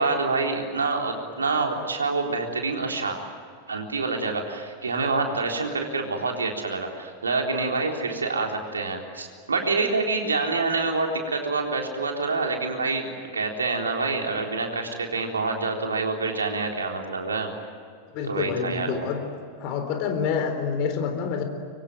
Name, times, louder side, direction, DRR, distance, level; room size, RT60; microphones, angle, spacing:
voice 1, 0.0-3.2 3.7-17.5 18.3-19.1, right 3 dB, 75° right, 2 dB, 3.8 m, -27 dB
voice 2, 18.1-19.3 19.6-21.4, left 6 dB, 45° left, 6 dB, 4.1 m, -27 dB
25.0 x 24.0 x 9.4 m, 2.2 s
figure-of-eight pair, 90°, 0 cm